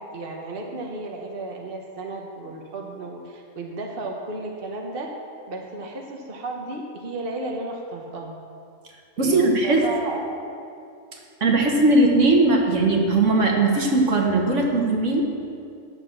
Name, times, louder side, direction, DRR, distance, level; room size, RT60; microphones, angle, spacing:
voice 1, 0.0-5.1 5.5-8.4 9.2-10.5, right 2 dB, 45° right, 0 dB, 1.2 m, -33 dB
voice 2, 9.2-9.8 11.1-15.2, right 2 dB, 65° right, 0 dB, 1.7 m, -19 dB
10.5 x 7.2 x 7.3 m, 2.4 s
omnidirectional pair, 1.3 m